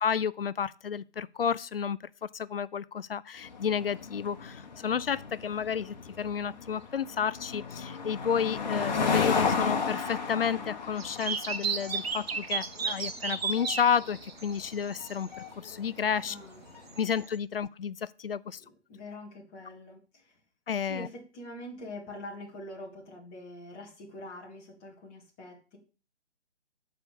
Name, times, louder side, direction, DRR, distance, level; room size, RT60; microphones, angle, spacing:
voice 1, 0.0-2.0 2.3-15.3 15.6-16.4 17.0-18.6 20.7-21.1, left 7 dB, 55° left, 0.4 m, -31 dB
sound 1, 3.4-16.9, left 5 dB, 40° left, 1.1 m, -34 dB
sound 2, 11.0-15.3 16.9-17.4, right 5 dB, 60° right, 1.0 m, -34 dB
voice 2, 16.2-16.7 18.6-20.4 20.9-25.8, left 1 dB, 10° left, 0.8 m, -44 dB
6.8 x 4.9 x 6.9 m
figure-of-eight pair, 150°, 34 cm